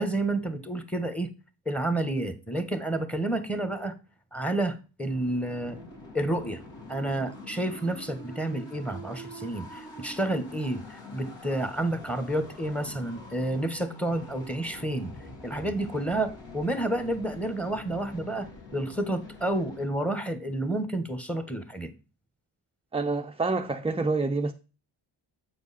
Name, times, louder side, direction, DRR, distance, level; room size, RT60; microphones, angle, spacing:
voice 1, 0.0-1.3 1.6-3.9 4.3-5.8 6.1-6.6 6.9-15.1 15.4-21.9, right 1 dB, 5° left, 1.2 m, -30 dB
sound 1, 5.1-19.9, left 2 dB, 65° left, 2.5 m, -45 dB
voice 2, 22.9-24.5, right 3 dB, 15° right, 0.5 m, -27 dB
7.8 x 4.8 x 4.2 m
cardioid pair, 75°, 48 cm